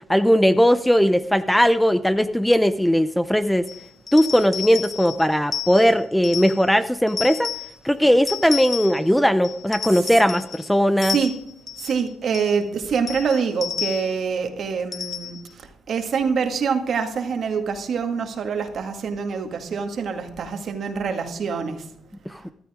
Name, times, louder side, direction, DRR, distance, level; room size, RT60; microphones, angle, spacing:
voice 1, 0.1-3.7 4.1-7.5 7.8-11.2 22.3-22.4, equal, 5° left, 12 dB, 0.6 m, -18 dB
sound 1, 3.7-6.7 7.1-7.8 8.3-9.1 9.4-10.7 11.0-12.0 12.3-12.6 13.1-14.2 14.9-15.5, left 8 dB, 45° left, 1.2 m, -32 dB
voice 2, 11.8-15.4 15.9-21.8, right 6 dB, 60° right, 6 dB, 2.0 m, -25 dB
14.5 x 12.5 x 3.7 m, 0.73 s
cardioid pair, 90°, 0 cm